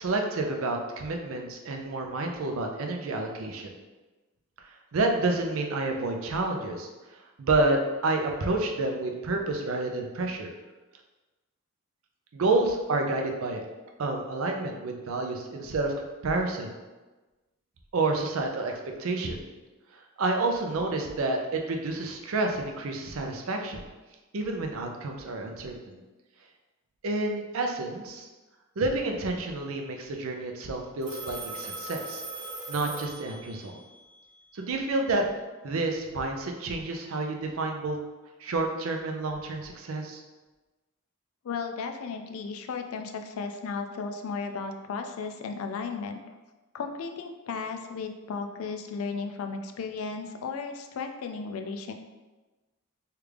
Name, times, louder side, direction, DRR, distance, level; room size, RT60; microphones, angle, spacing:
voice 1, 0.0-3.7 4.9-6.9 7.4-10.5 12.3-13.6 14.0-16.7 17.9-19.4 20.2-23.8 24.3-26.0 27.0-28.3 28.8-32.2 32.7-33.7 34.5-35.3 35.6-38.0 38.4-40.2, right 2 dB, 75° right, 3 dB, 0.5 m, -29 dB
Telephone, 31.0-33.8, right 2 dB, 40° right, 1.0 m, -39 dB
voice 2, 41.4-46.2 46.7-51.9, left 5 dB, 75° left, 5 dB, 0.3 m, -35 dB
3.3 x 2.4 x 3.3 m, 1.2 s
head